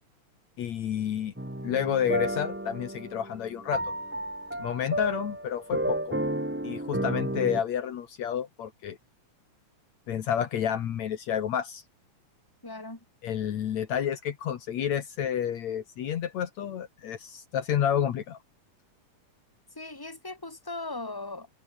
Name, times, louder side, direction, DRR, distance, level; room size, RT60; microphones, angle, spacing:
voice 1, 0.6-1.3 1.6-3.8 4.6-6.2 6.6-9.0 10.1-11.8 13.2-18.4, left 9 dB, 65° left, 2.7 m, -30 dB
sound 1, 1.4-7.6, right 1 dB, 10° right, 0.7 m, -32 dB
voice 2, 12.6-13.0 19.7-21.5, left 2 dB, 5° left, 3.7 m, -38 dB
omnidirectional pair, 3.5 m